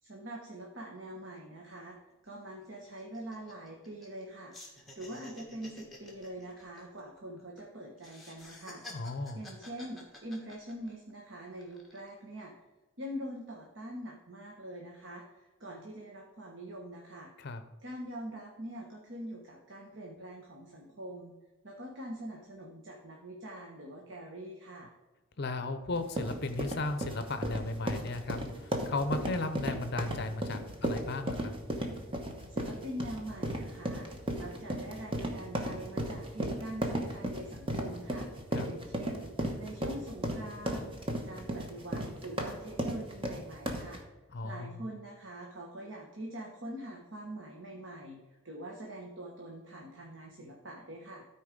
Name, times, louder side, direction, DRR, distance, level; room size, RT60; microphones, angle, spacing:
voice 1, 0.0-2.0 2.2-8.8 9.3-12.5 13.0-17.3 17.8-21.4 21.6-24.9 32.5-38.3 38.6-40.9 41.2-44.0 44.4-48.2 48.4-51.2, right 1 dB, 60° right, -1 dB, 1.2 m, -44 dB
sound 1, 1.7-1.8 2.1-2.3 2.6-4.2 4.5-7.6 8.0-11.1 11.6-12.1, left 2 dB, ahead, 1.6 m, -51 dB
voice 2, 8.9-9.4 17.4-17.6 25.4-31.5 38.5-38.7 44.3-44.8, left 2 dB, 50° left, 9 dB, 0.6 m, -35 dB
sound 2, 25.9-44.0, right 1 dB, 25° right, 1.0 m, -35 dB
13.0 x 4.4 x 5.1 m, 1.1 s
head